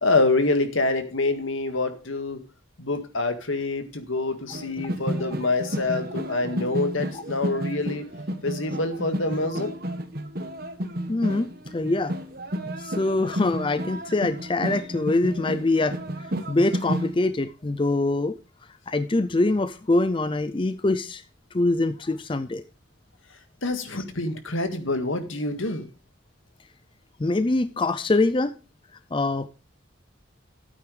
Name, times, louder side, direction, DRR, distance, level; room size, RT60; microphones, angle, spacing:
voice 1, 0.0-2.4 2.8-8.1 8.4-9.7 23.6-25.9, left 2 dB, 80° left, 1.9 m, -26 dB
sound 1, 4.5-17.1, right 1 dB, 50° right, 1.3 m, -32 dB
voice 2, 11.1-12.1 12.8-16.0 16.5-18.4 18.9-21.2 21.5-22.6 27.2-28.5 29.1-29.5, left 2 dB, 25° left, 0.4 m, -24 dB
13.0 x 9.1 x 3.3 m
head